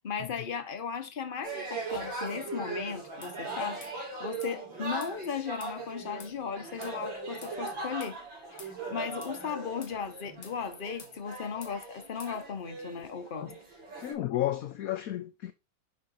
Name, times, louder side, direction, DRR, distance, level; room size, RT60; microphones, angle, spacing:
voice 1, 0.0-8.2 8.5-13.5, left 6 dB, 30° left, 1.1 m, -36 dB
sound 1, 1.4-14.1, right 3 dB, 70° right, 5.0 m, -40 dB
sound 2, 3.2-3.4 3.8-4.0 4.4-4.6 5.0-5.2 5.6-5.8 6.2-6.4 6.8-7.0 7.4-7.6 8.0-8.2 8.6-8.8 9.2-9.4 9.8-10.0 10.4-10.6 11.0-11.2 11.6-11.8 12.2-12.4, left 4 dB, 50° left, 1.9 m, -49 dB
voice 2, 14.0-15.5, left 13 dB, 65° left, 0.9 m, -32 dB
10.5 x 4.8 x 3.8 m
omnidirectional pair, 2.1 m